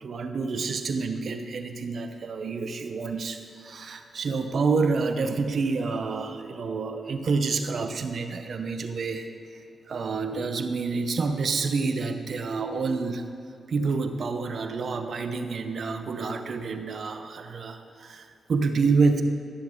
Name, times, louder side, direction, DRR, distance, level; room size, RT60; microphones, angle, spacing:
voice 1, 0.0-9.3 9.9-13.2 13.7-19.2, right 4 dB, 65° right, 7 dB, 0.7 m, -28 dB
12.5 x 7.1 x 3.8 m, 2.7 s
supercardioid pair, 45°, 0 cm